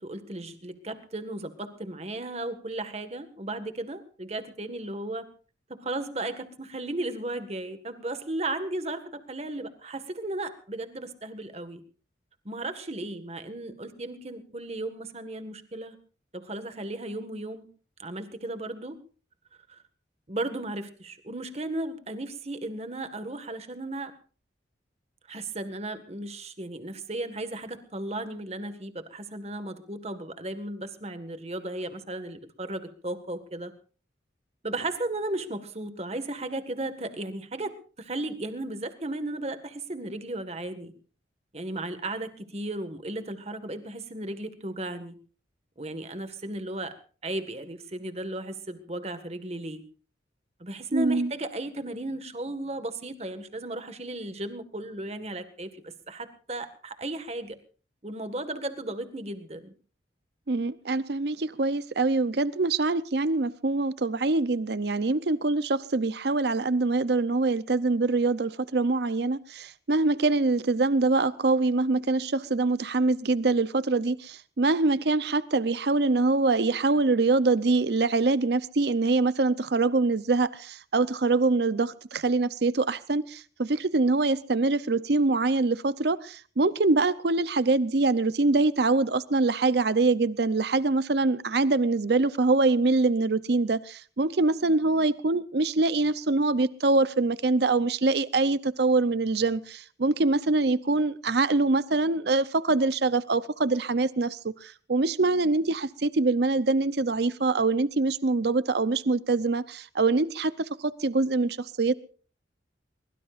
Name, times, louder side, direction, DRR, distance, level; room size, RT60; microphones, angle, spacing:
voice 1, 0.0-5.3 5.7-11.8 12.5-16.0 16.3-17.7 18.0-19.0 19.7-19.8 20.3-24.1 25.3-33.7 34.6-40.9 41.5-45.2 45.8-47.0 47.2-49.8 50.6-57.6 58.0-59.7, right 2 dB, 35° right, 1.7 m, -35 dB
voice 2, 50.9-51.3 60.5-111.9, right 3 dB, 60° right, 0.7 m, -24 dB
23.0 x 22.0 x 2.5 m
head